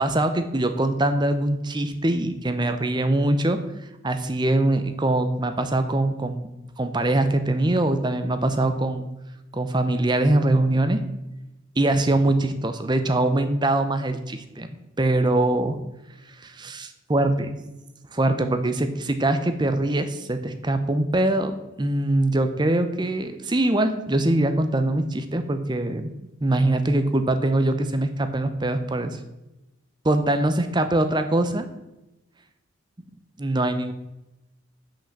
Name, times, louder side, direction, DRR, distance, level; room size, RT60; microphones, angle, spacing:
voice 1, 0.0-3.6 4.0-6.5 6.8-9.1 9.5-11.0 11.8-14.7 15.0-15.8 16.4-17.6 18.1-26.1 26.4-29.2 30.0-31.7 33.4-33.9, right 1 dB, 20° right, 9 dB, 0.6 m, -23 dB
5.9 x 5.5 x 7.0 m, 0.97 s
head